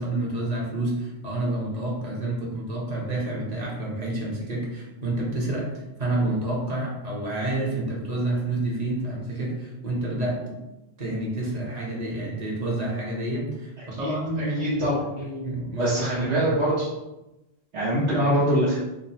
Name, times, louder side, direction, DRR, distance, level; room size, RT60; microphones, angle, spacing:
voice 1, 0.0-10.6 11.0-16.5, right 1 dB, 40° right, -3 dB, 0.8 m, -29 dB
voice 2, 14.0-15.3 15.8-16.9 17.7-18.8, right 1 dB, 85° right, -10 dB, 1.2 m, -24 dB
2.8 x 2.2 x 4.0 m, 0.97 s
omnidirectional pair, 1.1 m